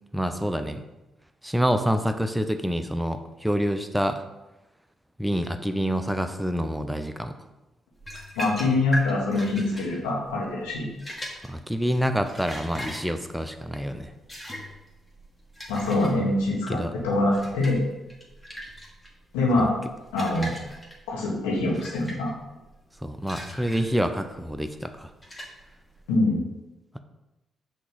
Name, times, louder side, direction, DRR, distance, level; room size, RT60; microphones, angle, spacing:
voice 1, 0.1-0.8 1.4-4.2 5.2-7.4 11.4-14.1 16.7-16.9 19.6-19.7 23.0-25.1, equal, 5° right, 8 dB, 0.6 m, -27 dB
sound 1, 8.0-26.1, equal, 20° left, 1.8 m, -40 dB
voice 2, 8.3-10.9 15.7-16.8 17.0-17.8 19.3-19.8 20.1-20.5 21.1-22.3 26.1-26.4, left 2 dB, 85° left, -4 dB, 1.4 m, -24 dB
6.1 x 3.0 x 5.5 m, 1.0 s
hypercardioid pair, 45°, 0 cm